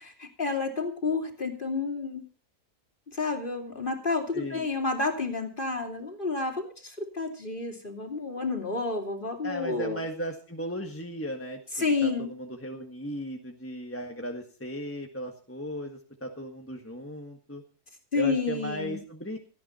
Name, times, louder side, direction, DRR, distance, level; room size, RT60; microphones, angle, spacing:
voice 1, 0.0-2.2 3.1-10.0 11.7-12.3 18.1-19.0, left 3 dB, 30° left, 3 dB, 3.1 m, -30 dB
voice 2, 4.3-4.7 9.4-11.6 12.0-17.6 18.1-19.4, equal, 10° left, 2 dB, 1.5 m, -36 dB
17.5 x 13.5 x 4.3 m, 0.37 s
omnidirectional pair, 1.7 m